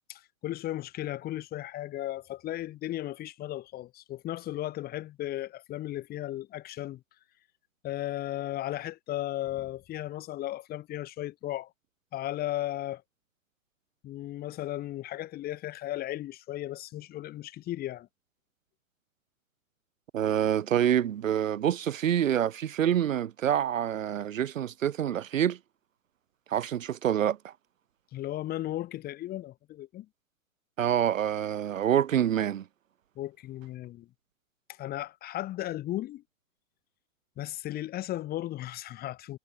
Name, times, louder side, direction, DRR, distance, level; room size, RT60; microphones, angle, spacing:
voice 1, 0.0-7.0 7.8-11.7 12.1-13.0 14.0-18.1 28.1-30.1 33.2-34.1 34.8-36.2 37.4-39.4, left 14 dB, 25° left, 3.6 m, -35 dB
voice 2, 20.1-25.6 26.5-27.5 30.8-32.6, right 10 dB, 70° right, 1.6 m, -27 dB
hypercardioid pair, 140°, 40 cm